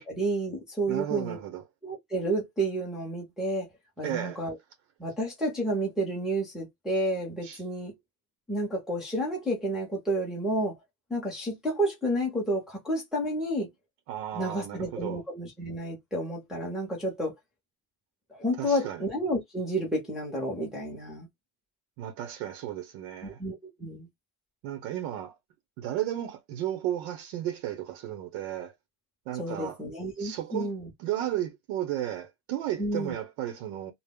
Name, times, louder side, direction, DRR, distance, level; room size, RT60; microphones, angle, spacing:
voice 1, 0.1-1.4 1.8-3.7 4.0-4.6 5.0-8.0 8.5-10.8 11.1-13.7 14.3-17.4 18.4-21.3 23.2-24.1 29.3-30.9 32.8-33.1, right 1 dB, ahead, 0.4 m, -30 dB
voice 2, 0.9-1.6 4.0-4.4 7.4-7.6 14.1-15.2 18.6-19.0 22.0-23.4 24.6-25.4 25.8-28.7 29.3-29.8 30.2-30.7 31.0-33.9, right 12 dB, 85° right, 0.7 m, -34 dB
2.0 x 2.0 x 3.5 m
cardioid pair, 175°, 46 cm